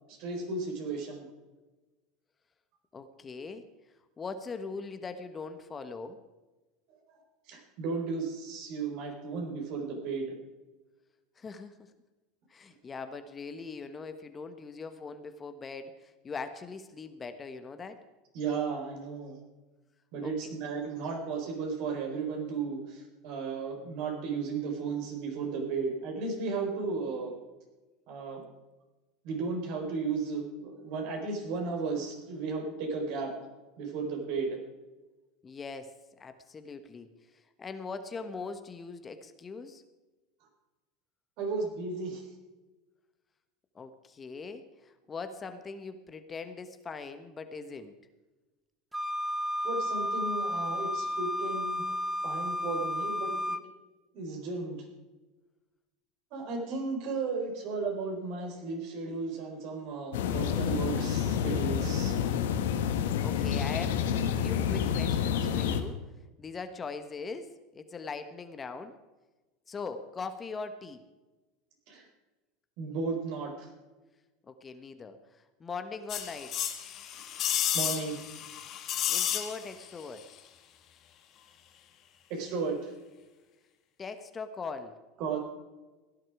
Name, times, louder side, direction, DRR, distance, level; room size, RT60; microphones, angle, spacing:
voice 1, 0.1-1.3 7.1-7.2 7.5-10.3 18.3-19.4 20.1-27.4 28.1-28.4 29.2-33.3 33.8-34.6 41.4-42.3 49.6-51.8 52.2-53.5 54.1-54.8 56.3-62.1 71.9-72.1 72.8-73.7 77.3-78.2 82.3-82.9 85.2-85.4, right 4 dB, 60° right, 3 dB, 4.5 m, -34 dB
voice 2, 2.9-3.7 4.2-6.2 11.4-11.9 12.5-18.0 20.2-20.3 35.4-37.1 37.6-39.8 43.7-47.9 63.2-64.0 64.4-66.0 66.4-69.0 69.7-71.0 74.4-76.5 79.1-80.3 84.0-85.0, left 4 dB, 25° left, 9 dB, 1.3 m, -41 dB
Wind instrument woodwind instrument, 48.9-53.6, left 1 dB, 5° right, 1.2 m, -32 dB
sound 1, 60.1-65.8, left 8 dB, 75° left, 1.4 m, -29 dB
sound 2, 76.1-79.9 80.2-80.3, left 10 dB, 45° left, 1.7 m, -32 dB
16.5 x 11.0 x 4.9 m, 1.2 s
hypercardioid pair, 85°, 0 cm